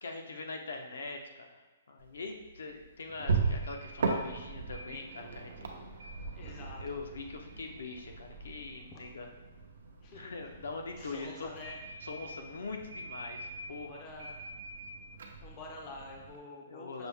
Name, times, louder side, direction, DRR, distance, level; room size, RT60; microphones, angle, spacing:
voice 1, 0.0-1.6 1.9-5.7 6.3-9.3 10.1-11.5 12.0-13.9 16.7-17.1, left 3 dB, 80° left, 3 dB, 0.6 m, -42 dB
sound 1, 2.0-16.4, right 4 dB, 65° right, 0.5 m, -39 dB
voice 2, 6.3-6.8 8.9-9.0 10.0-10.3 11.0-11.8 13.8-14.4 15.4-17.1, left 3 dB, 20° left, -1 dB, 0.4 m, -47 dB
5.9 x 2.0 x 3.5 m, 1.3 s
hypercardioid pair, 175°, 0 cm